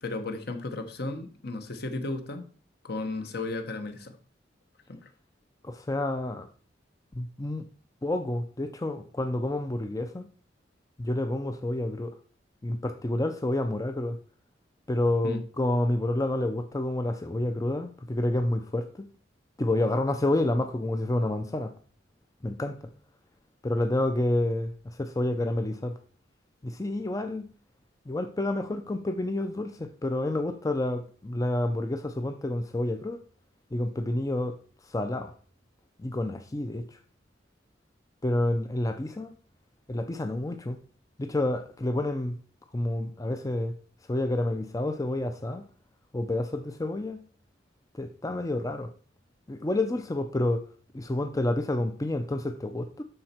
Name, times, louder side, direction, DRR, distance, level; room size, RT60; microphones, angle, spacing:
voice 1, 0.0-2.4 2.8-4.2 4.9-5.1 15.2-15.4, left 2 dB, 60° left, 1.1 m, -34 dB
voice 2, 5.6-6.5 7.1-7.7 8.0-10.3 11.0-12.1 12.6-14.2 14.9-19.1 19.6-21.7 22.4-22.8 23.6-26.0 26.6-27.5 28.1-33.2 33.7-34.6 34.9-35.3 36.0-37.0 38.2-39.4 39.9-40.8 41.2-42.4 42.7-43.8 44.1-45.7 46.1-47.2 48.0-48.9 49.5-50.7 50.9-53.0, left 1 dB, 20° left, 0.5 m, -29 dB
12.0 x 4.3 x 4.4 m
head